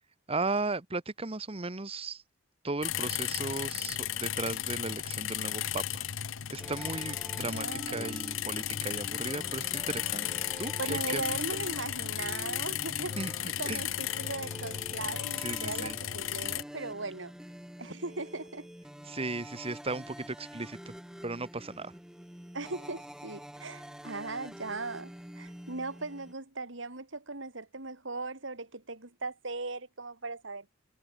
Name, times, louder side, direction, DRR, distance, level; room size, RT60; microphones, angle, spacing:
voice 1, 0.3-2.2 2.6-6.0 6.5-11.6 13.2-13.8 15.4-16.0 19.1-20.9 21.2-21.9, right 3 dB, 30° right, 1.4 m, -36 dB
sound 1, 2.8-16.6, left 11 dB, 80° left, 0.8 m, -35 dB
sound 2, 6.6-26.3, equal, 5° right, 0.5 m, -47 dB
voice 2, 7.4-8.2 10.8-13.2 13.6-17.3 17.8-18.7 22.5-30.7, right 3 dB, 70° right, 2.8 m, -38 dB
head